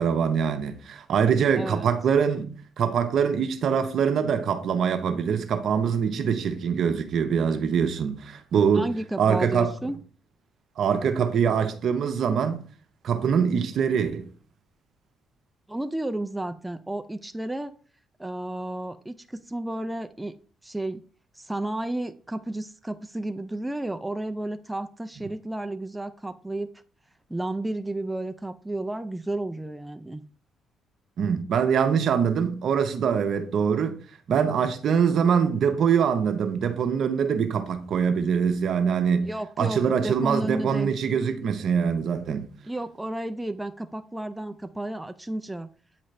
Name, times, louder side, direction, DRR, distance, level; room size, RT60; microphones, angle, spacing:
voice 1, 0.0-2.5 2.8-8.9 9.2-9.7 10.8-12.6 13.0-14.3 31.2-33.9 34.3-39.3 39.6-42.5, right 7 dB, 65° right, 0.8 m, -23 dB
voice 2, 1.6-1.9 8.7-10.0 15.7-17.7 18.2-20.3 20.6-21.0 21.4-26.7 27.3-30.2 39.2-40.9 42.7-45.7, right 1 dB, 10° right, 0.4 m, -32 dB
8.8 x 4.0 x 3.2 m
cardioid pair, 90°, 0 cm